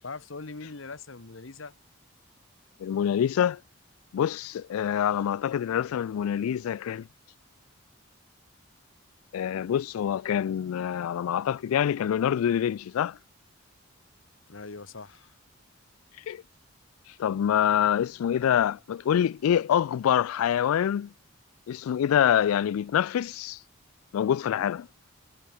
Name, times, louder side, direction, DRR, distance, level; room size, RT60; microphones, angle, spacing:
voice 1, 0.0-1.7 14.5-15.3, left 3 dB, 65° left, 1.1 m, -41 dB
voice 2, 2.8-3.6 4.1-7.1 9.3-13.2 16.3-16.4 17.2-21.1 21.7-23.6 24.1-24.9, left 9 dB, 85° left, 0.3 m, -25 dB
head